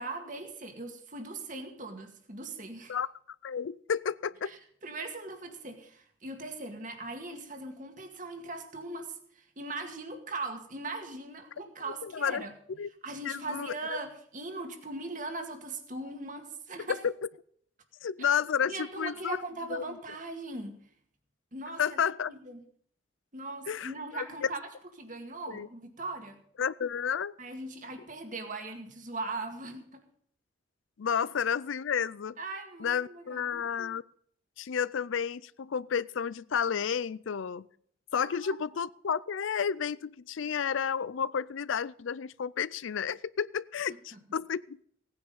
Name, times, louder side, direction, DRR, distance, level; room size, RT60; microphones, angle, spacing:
voice 1, 0.0-3.0 4.5-12.5 13.0-17.0 18.7-20.8 21.5-22.0 22.3-22.6 23.3-24.7 25.0-26.4 27.4-30.0 32.4-33.6 38.2-38.6 44.1-44.2, right 2 dB, 40° right, 5 dB, 2.1 m, -40 dB
voice 2, 3.4-4.5 12.0-12.4 12.8-12.9 13.3-14.0 17.0-17.1 18.0-19.4 19.7-19.8 21.8-22.3 23.7-24.2 25.5-25.7 26.6-27.3 31.0-32.3 32.8-34.0 34.6-37.6 38.1-44.9, left 7 dB, 75° left, 19 dB, 0.4 m, -31 dB
17.0 x 9.6 x 5.5 m, 0.62 s
head